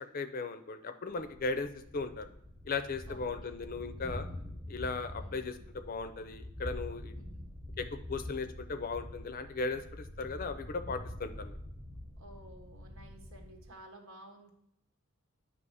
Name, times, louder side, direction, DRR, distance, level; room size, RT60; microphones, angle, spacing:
voice 1, 0.0-1.7 1.9-2.3 2.7-4.3 4.7-7.1 7.8-11.6, left 4 dB, 45° left, 9 dB, 0.5 m, -37 dB
Thunder, 1.2-13.8, left 1 dB, 5° right, 0.8 m, -45 dB
voice 2, 4.1-4.5 5.2-5.6 7.2-7.4 12.2-14.5, right 1 dB, 85° right, 3 dB, 1.2 m, -54 dB
8.0 x 2.9 x 5.5 m, 0.78 s
head